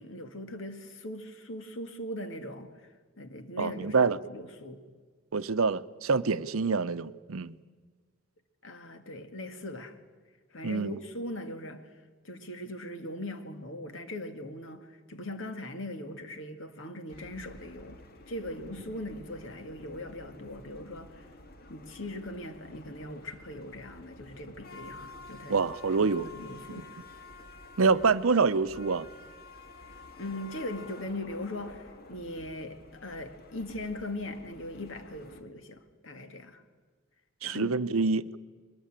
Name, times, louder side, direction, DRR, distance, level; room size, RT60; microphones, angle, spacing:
voice 1, 0.0-2.7 3.2-4.8 8.6-10.0 10.5-11.9 12.2-21.3 21.7-25.6 25.9-26.9 30.2-36.6 37.4-37.7, left 1 dB, 65° left, 2.0 m, -40 dB
voice 2, 3.6-4.2 5.3-7.6 10.6-11.0 25.5-26.3 27.8-29.1 37.4-38.4, right 4 dB, 90° right, 0.7 m, -26 dB
sound 1, 17.1-35.4, left 2 dB, 50° left, 1.9 m, -50 dB
22.0 x 19.5 x 8.9 m
head